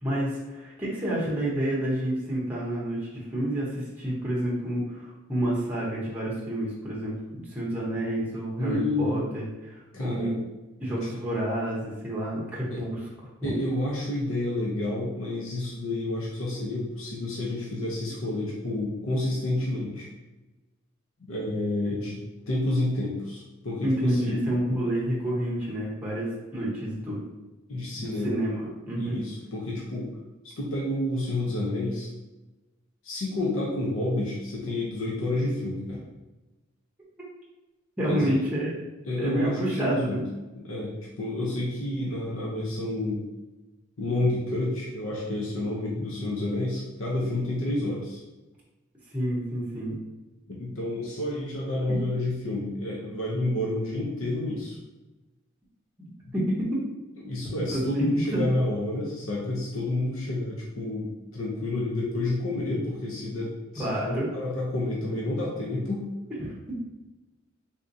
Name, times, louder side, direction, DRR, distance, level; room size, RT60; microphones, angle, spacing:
voice 1, 0.0-10.4 10.8-13.0 13.4-13.5 23.8-27.2 28.0-29.2 38.0-38.8 39.2-40.2 49.1-49.9 51.9-52.0 56.3-56.8 57.7-58.4 63.7-64.3 66.4-66.5, right 1 dB, 5° right, -6 dB, 0.7 m, -29 dB
voice 2, 8.6-9.2 9.9-10.3 12.6-12.8 13.4-20.1 21.3-22.2 22.5-24.4 27.7-28.5 29.0-30.1 30.6-32.1 33.0-36.0 38.1-38.4 39.0-40.2 40.5-43.2 44.0-48.2 50.5-54.8 57.2-66.1, left 1 dB, 80° left, -4 dB, 0.7 m, -29 dB
3.6 x 2.7 x 2.6 m, 1.1 s
head